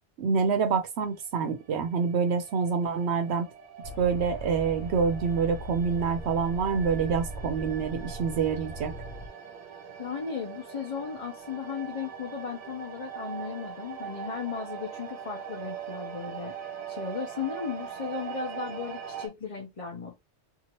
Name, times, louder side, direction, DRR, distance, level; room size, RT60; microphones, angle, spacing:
voice 1, 0.2-3.5 4.0-8.9, right 6 dB, 70° right, 0.8 m, -27 dB
sound 1, 1.2-19.3, right 8 dB, 45° right, 0.9 m, -42 dB
sound 2, 3.8-9.3, right 1 dB, 60° left, 1.1 m, -40 dB
voice 2, 10.0-16.5 16.9-20.2, left 6 dB, 35° left, 0.7 m, -36 dB
2.8 x 2.5 x 2.9 m
omnidirectional pair, 1.2 m